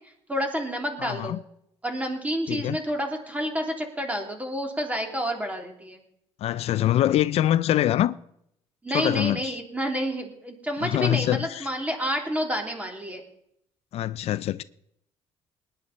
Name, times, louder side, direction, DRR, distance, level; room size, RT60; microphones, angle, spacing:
voice 1, 0.3-1.4 1.8-6.0 8.8-13.2, equal, 10° right, 3.2 m, -29 dB
voice 2, 1.0-1.4 2.5-2.8 6.4-8.1 8.9-9.6 10.8-11.7 13.9-14.6, left 12 dB, 60° left, 0.4 m, -24 dB
20.0 x 10.0 x 4.2 m
cardioid pair, 90°, 12 cm